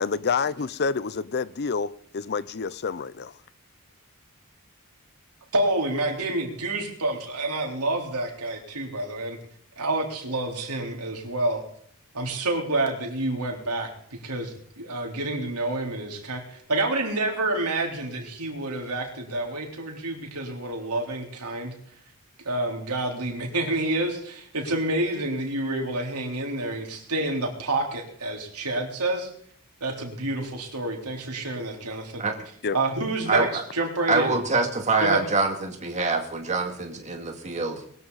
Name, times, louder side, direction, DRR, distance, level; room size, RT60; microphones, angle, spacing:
voice 1, 0.0-0.5 0.8-3.3 32.6-32.8, left 5 dB, 50° left, 0.6 m, -28 dB
voice 2, 5.5-9.4 9.8-11.6 12.1-21.7 22.4-29.3 29.8-32.2 32.7-33.5 33.7-34.3 35.0-35.2, right 2 dB, 90° right, 3.8 m, -28 dB
voice 3, 33.3-33.6 34.1-37.9, right 3 dB, 30° right, 2.3 m, -25 dB
21.5 x 14.0 x 4.1 m
head